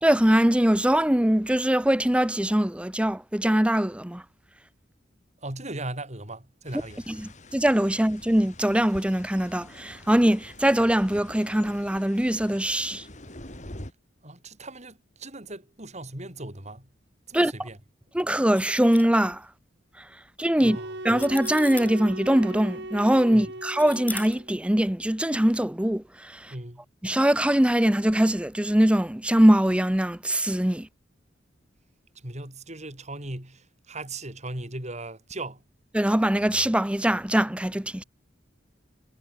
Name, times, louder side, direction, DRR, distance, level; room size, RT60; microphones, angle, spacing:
voice 1, 0.0-4.2 7.1-13.1 17.3-17.5 18.1-19.5 20.0-20.1 20.4-20.8 21.0-26.5 27.0-30.9 35.9-38.0, right 1 dB, 5° right, 0.7 m, -22 dB
voice 2, 5.4-7.0 14.2-16.9 17.3-17.8 20.6-21.0 23.3-23.5 26.5-26.9 32.1-35.6, right 2 dB, 35° right, 6.4 m, -38 dB
sound 1, 6.6-13.9, left 1 dB, 40° left, 6.4 m, -46 dB
sound 2, 18.5-19.3 20.6-20.7 21.1-21.9 23.6-24.6, left 3 dB, 10° left, 2.4 m, -39 dB
sound 3, 20.6-24.5, right 1 dB, 60° right, 4.2 m, -38 dB
head